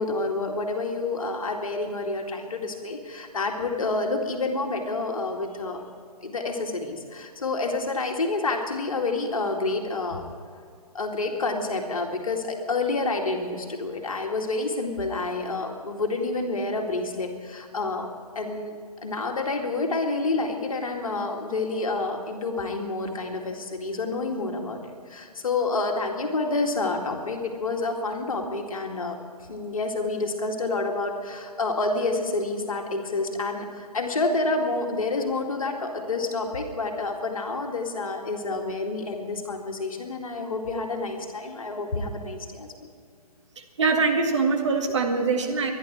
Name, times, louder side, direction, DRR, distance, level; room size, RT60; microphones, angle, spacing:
voice 1, 0.0-5.8 6.2-10.2 10.9-18.1 18.4-29.2 29.5-42.7, left 3 dB, 60° left, 3 dB, 2.3 m, -28 dB
voice 2, 43.8-45.7, right 4 dB, 50° right, 3 dB, 2.0 m, -23 dB
23.5 x 11.0 x 4.6 m, 2.1 s
figure-of-eight pair, 130°, 20 cm